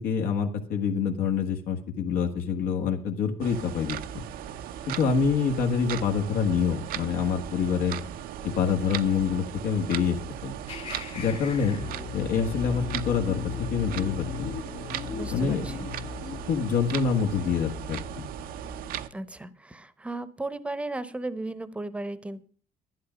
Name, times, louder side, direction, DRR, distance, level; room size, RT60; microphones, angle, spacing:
voice 1, 0.0-4.0 4.9-8.0 8.4-10.2 10.4-10.5 11.1-11.8 12.1-14.6 15.3-15.7 16.5-18.2, left 6 dB, 85° left, 3 dB, 1.5 m, -26 dB
sound 1, 3.4-19.1, right 10 dB, 75° right, 0.7 m, -38 dB
sound 2, 10.7-16.4, left 5 dB, 45° left, 1.7 m, -42 dB
sound 3, 11.5-19.1, left 7 dB, 60° left, 0.8 m, -39 dB
voice 2, 15.1-15.9 19.1-22.4, right 2 dB, 10° right, 15 dB, 0.8 m, -35 dB
11.5 x 11.0 x 5.1 m, 0.44 s
cardioid pair, 155°, 15 cm